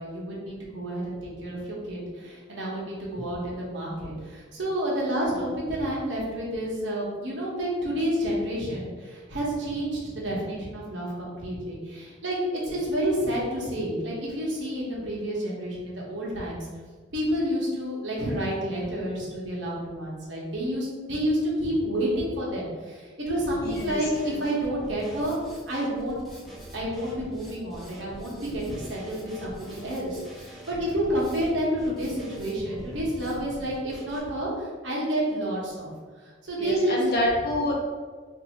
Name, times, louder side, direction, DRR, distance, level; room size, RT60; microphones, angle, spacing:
voice 1, 0.0-16.7 17.1-25.3 25.7-35.9 36.4-37.0, equal, 65° right, -5 dB, 1.1 m, -29 dB
Drum kit, 23.4-34.2, equal, ahead, 0.5 m, -44 dB
voice 2, 23.6-24.0 24.2-24.4 36.6-37.7, left 1 dB, 50° left, -2 dB, 0.7 m, -27 dB
2.7 x 2.6 x 4.0 m, 1.5 s
head